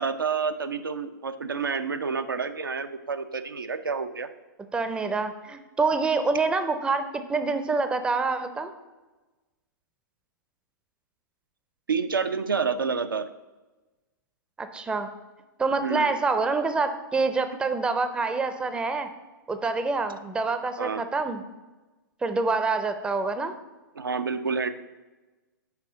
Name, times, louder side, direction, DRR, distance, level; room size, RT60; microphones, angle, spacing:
voice 1, 0.0-4.3 11.9-13.3 15.8-16.2 20.8-21.0 24.0-24.7, right 5 dB, 85° right, 9 dB, 0.5 m, -28 dB
voice 2, 4.7-8.7 14.6-15.1 15.6-19.1 19.5-21.4 22.2-23.5, right 3 dB, 10° right, 9 dB, 0.5 m, -26 dB
5.7 x 4.8 x 5.0 m, 1.2 s
figure-of-eight pair, 110°, 11 cm